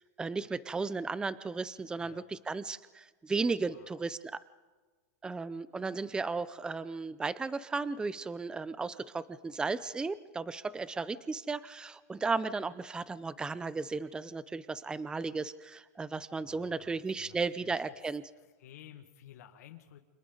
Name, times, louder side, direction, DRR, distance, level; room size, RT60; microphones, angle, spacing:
voice 1, 0.0-4.4 5.2-18.3, right 4 dB, 10° right, 16 dB, 0.6 m, -35 dB
voice 2, 3.6-4.1 16.4-17.8 18.6-20.0, left 11 dB, 70° left, 5 dB, 1.9 m, -54 dB
29.5 x 27.0 x 4.0 m, 1.3 s
supercardioid pair, 140°, 9 cm